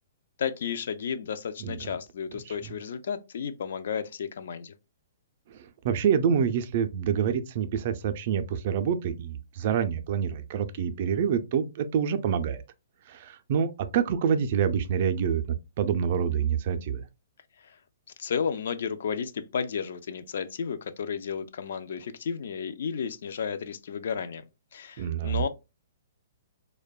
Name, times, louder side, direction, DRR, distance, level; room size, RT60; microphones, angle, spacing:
voice 1, 0.4-4.7 17.6-17.8 18.2-24.4 24.7-25.5, left 6 dB, 65° left, 0.3 m, -33 dB
voice 2, 5.5-12.6 13.1-17.0 25.0-25.5, right 7 dB, 45° right, 0.3 m, -27 dB
2.6 x 2.1 x 2.2 m
hypercardioid pair, 155°, 0 cm